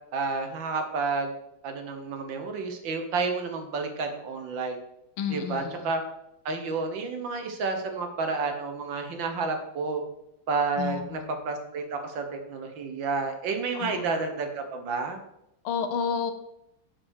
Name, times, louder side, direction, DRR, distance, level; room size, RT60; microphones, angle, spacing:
voice 1, 0.1-1.3 1.6-4.8 5.3-6.0 6.4-10.0 10.5-11.2 11.4-15.2, right 4 dB, 65° right, 5 dB, 1.8 m, -30 dB
voice 2, 5.2-5.9 10.8-11.3 13.7-14.2 15.6-16.3, left 7 dB, 80° left, 9 dB, 1.7 m, -31 dB
8.1 x 4.8 x 6.3 m, 0.81 s
omnidirectional pair, 2.3 m